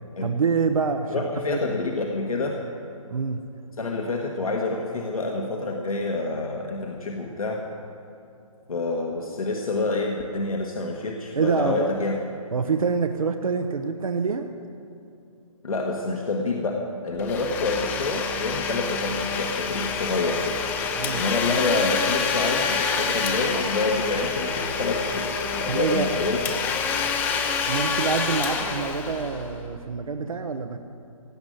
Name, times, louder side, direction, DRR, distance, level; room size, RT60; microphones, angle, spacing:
voice 1, 0.2-1.7 3.1-3.4 11.3-11.9 12.5-14.5 20.9-21.2 25.7-26.1 27.7-30.8, right 5 dB, 75° right, 6 dB, 0.8 m, -26 dB
voice 2, 1.1-2.6 3.8-7.6 8.7-12.1 15.6-20.6 21.1-26.4, left 3 dB, 75° left, 1 dB, 1.5 m, -27 dB
Domestic sounds home sounds, 17.2-29.8, left 5 dB, 10° left, 0.5 m, -27 dB
17.0 x 6.2 x 9.2 m, 2.6 s
figure-of-eight pair, 145°, 18 cm